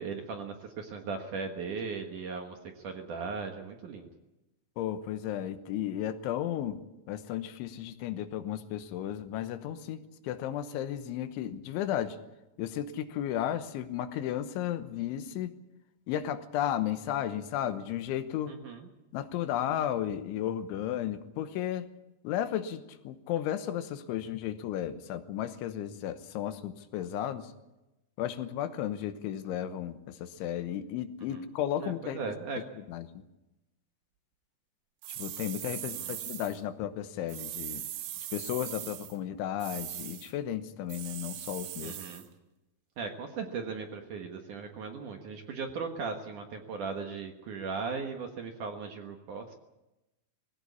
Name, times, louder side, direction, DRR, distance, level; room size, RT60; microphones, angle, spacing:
voice 1, 0.0-4.1 18.5-18.9 31.3-31.5 31.8-32.6 35.9-36.2 41.8-42.2 43.0-49.5, right 5 dB, 60° right, 3 dB, 2.3 m, -38 dB
voice 2, 4.8-6.8 7.1-12.2 12.6-15.5 16.1-18.5 19.1-21.9 22.2-27.5 28.2-33.1 35.2-37.9 38.3-42.0, left 11 dB, 90° left, 10 dB, 3.5 m, -34 dB
sound 1, 35.0-36.6 37.3-39.2 39.6-40.3 40.9-42.3, right 12 dB, 80° right, 3.6 m, -40 dB
21.0 x 17.0 x 8.4 m, 0.99 s
omnidirectional pair, 5.3 m